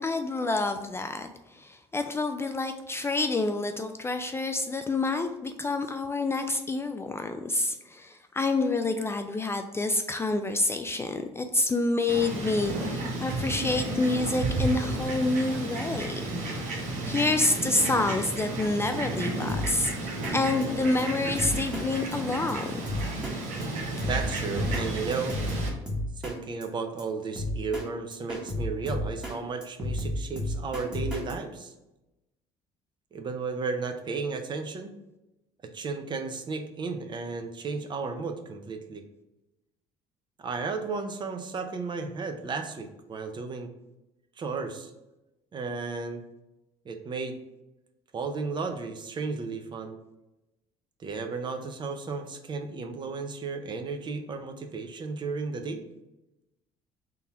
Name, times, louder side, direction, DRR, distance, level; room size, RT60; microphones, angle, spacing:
voice 1, 0.0-16.3 17.1-22.8, left 2 dB, 20° left, 7 dB, 0.3 m, -28 dB
Fowl, 12.1-25.7, right 2 dB, 65° right, 1.1 m, -32 dB
Drum kit, 19.5-19.9 20.2-20.4 20.6-20.7 21.0-21.1 21.4-21.9 22.1-22.2 22.5-22.6 22.9-23.4 23.6-23.7 24.0-24.9 25.1-26.4 26.6-26.7 27.0-27.1 27.4-27.9 28.1-29.4 29.6-31.3, left 1 dB, 5° right, 1.1 m, -32 dB
voice 2, 24.1-25.4 26.2-31.7 33.1-34.9 35.7-39.0 40.4-43.7 44.4-44.9 45.5-46.2 46.8-47.4 48.1-50.0 51.0-55.8, right 4 dB, 35° right, 6 dB, 0.6 m, -34 dB
3.8 x 2.8 x 4.6 m, 0.95 s
cardioid pair, 100°, 13 cm